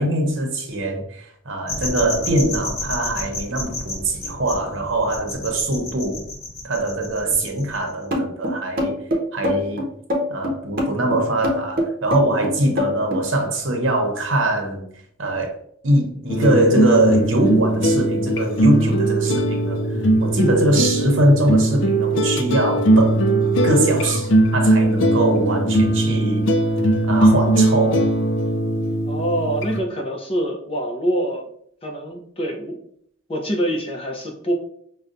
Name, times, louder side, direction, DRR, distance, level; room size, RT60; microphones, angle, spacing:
voice 1, 0.0-6.2 6.6-9.8 10.3-14.9 15.2-15.6 15.8-19.8 20.2-26.5 27.0-28.0, right 1 dB, 90° right, 3 dB, 0.8 m, -22 dB
sound 1, 1.7-7.9, left 2 dB, 55° left, 1.1 m, -31 dB
sound 2, 8.1-13.3, left 1 dB, 50° right, 0.7 m, -23 dB
sound 3, 16.3-29.8, right 1 dB, 75° left, 0.4 m, -19 dB
voice 2, 20.6-20.9 29.0-31.4 31.8-32.8 33.3-34.5, right 1 dB, 30° left, 1 dB, 0.6 m, -25 dB
5.2 x 2.2 x 2.5 m, 0.68 s
head